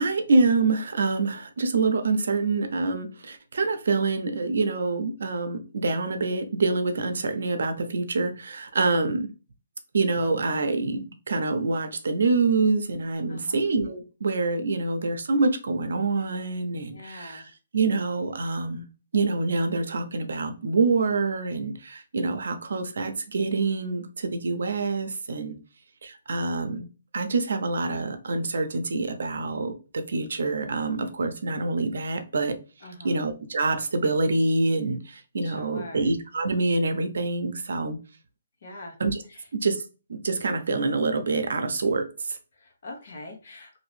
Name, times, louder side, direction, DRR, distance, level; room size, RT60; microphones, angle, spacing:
voice 1, 0.0-9.3 9.9-17.4 17.7-18.8 19.1-25.6 26.0-26.9 27.1-32.5 33.0-35.0 35.3-38.0 39.0-39.2 39.5-39.8 40.1-42.0, right 3 dB, 70° right, 0.7 m, -26 dB
voice 2, 13.3-13.7 16.9-17.5 32.8-33.2 35.4-36.1 38.6-39.0 39.3-39.5 42.5-43.7, left 2 dB, 55° left, 1.0 m, -43 dB
3.0 x 2.6 x 3.2 m
hypercardioid pair, 165°, 0 cm